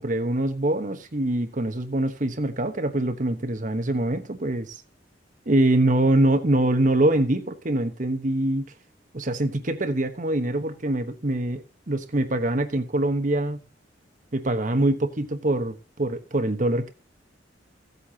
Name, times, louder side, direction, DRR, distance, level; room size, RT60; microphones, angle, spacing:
voice 1, 0.0-4.7 5.5-8.7 9.1-13.7 14.3-16.9, right 1 dB, 45° right, 1.1 m, -24 dB
16.0 x 8.2 x 2.9 m
head